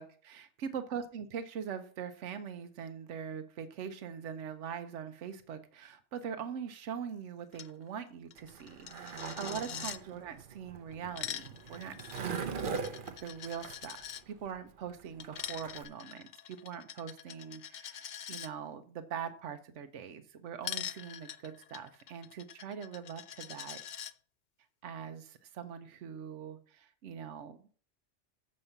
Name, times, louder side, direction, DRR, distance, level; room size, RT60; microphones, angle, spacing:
voice 1, 0.0-23.8 24.8-27.7, right 7 dB, 85° right, 9 dB, 1.1 m, -42 dB
Coin (dropping), 7.5-7.7 8.0-8.1 8.3-10.0 10.9-14.2 15.2-18.5 20.6-24.1, left 9 dB, 55° left, 0.5 m, -44 dB
Skateboard, 8.4-15.8, right 5 dB, 50° right, 0.9 m, -41 dB
7.1 x 5.4 x 6.6 m, 0.43 s
omnidirectional pair, 1.2 m